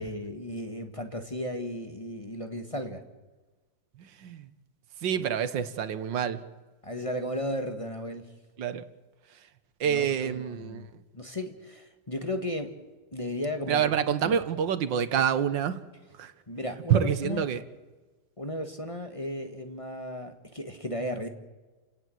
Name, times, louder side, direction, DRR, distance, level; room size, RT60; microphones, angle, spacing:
voice 1, 0.0-3.0 6.8-8.3 9.8-12.8 13.1-13.9 14.2-14.4 16.5-17.5 18.4-21.3, left 1 dB, 20° left, 6 dB, 1.5 m, -35 dB
voice 2, 4.0-4.5 5.0-6.4 8.6-8.8 9.3-9.5 9.8-11.0 13.7-15.8 16.1-16.3 16.9-17.6, right 8 dB, 90° right, 12 dB, 1.9 m, -27 dB
29.0 x 17.5 x 7.8 m, 1.2 s
omnidirectional pair, 1.9 m